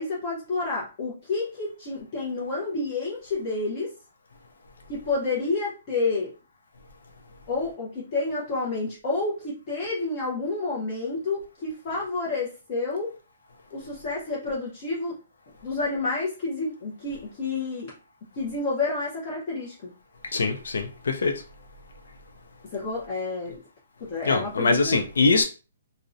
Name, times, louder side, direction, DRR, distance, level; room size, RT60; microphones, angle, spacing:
voice 1, 0.0-3.9 4.9-6.3 7.5-13.1 13.7-15.2 15.6-17.9 18.4-19.7 22.6-23.6 24.0-25.0, left 3 dB, 35° left, -5 dB, 0.6 m, -29 dB
voice 2, 20.3-21.3 24.3-25.4, left 3 dB, 90° left, 4 dB, 0.4 m, -23 dB
2.5 x 2.0 x 2.5 m, 0.33 s
hypercardioid pair, 165°, 0 cm